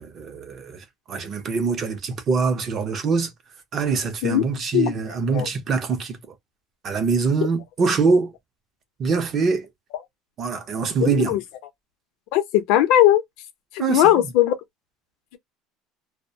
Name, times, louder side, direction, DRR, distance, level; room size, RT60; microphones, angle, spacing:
voice 1, 0.0-3.3 3.7-6.3 6.8-8.3 9.0-9.7 10.4-11.4 13.8-14.3, right 4 dB, 30° right, 0.5 m, -24 dB
voice 2, 11.0-11.4 12.3-13.2 13.7-14.5, left 12 dB, 65° left, 0.6 m, -18 dB
2.2 x 2.0 x 2.7 m
cardioid pair, 170°, 0 cm